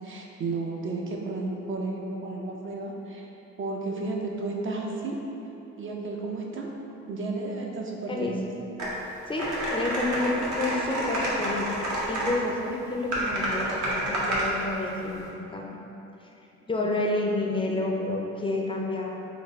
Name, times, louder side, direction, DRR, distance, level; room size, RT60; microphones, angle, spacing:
voice 1, 0.0-3.3 3.6-5.2 5.8-6.7 7.1-8.4 16.8-16.9, right 3 dB, 45° right, -1 dB, 0.4 m, -32 dB
sound 1, 8.8-8.9 9.4-12.3 13.1-14.5, right 1 dB, 70° right, 0.9 m, -29 dB
voice 2, 9.3-11.7 12.1-15.8 16.7-19.1, left 2 dB, 20° left, -1 dB, 0.4 m, -29 dB
3.9 x 2.3 x 3.5 m, 3.0 s
cardioid pair, 90°, 30 cm